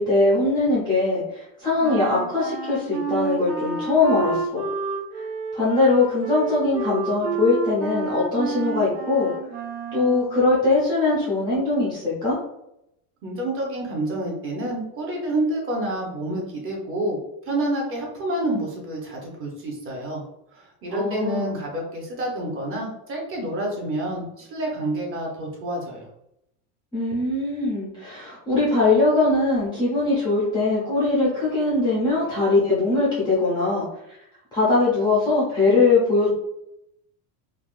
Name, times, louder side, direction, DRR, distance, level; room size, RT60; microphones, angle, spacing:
voice 1, 0.0-4.6 5.5-9.3 9.9-12.4 20.9-21.6 26.9-34.2 34.5-36.3, left 3 dB, 10° left, -8 dB, 0.4 m, -21 dB
Wind instrument woodwind instrument, 1.8-10.4, right 4 dB, 65° right, 1.2 m, -30 dB
voice 2, 13.2-17.2 17.4-20.2 20.5-26.1, right 1 dB, 30° right, -1 dB, 0.7 m, -28 dB
3.4 x 2.2 x 2.4 m, 0.81 s
cardioid pair, 165°, 46 cm